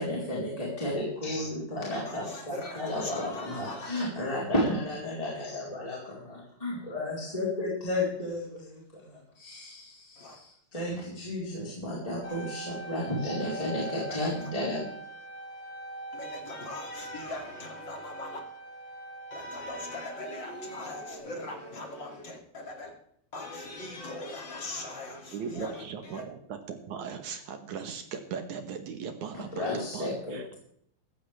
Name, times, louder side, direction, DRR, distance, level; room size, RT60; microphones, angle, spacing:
voice 1, 0.0-14.9 29.3-30.6, left 1 dB, 10° left, 3.6 m, -33 dB
voice 2, 2.1-4.1 10.2-10.4 12.3-12.5 13.8-14.5 16.1-18.4 19.3-22.9 23.3-26.2, left 2 dB, 30° left, 2.8 m, -40 dB
sound 1, 12.2-21.2, right 2 dB, 65° left, 1.2 m, -43 dB
voice 3, 25.3-30.6, right 6 dB, 65° right, 2.0 m, -38 dB
16.0 x 14.0 x 3.4 m
omnidirectional pair, 4.5 m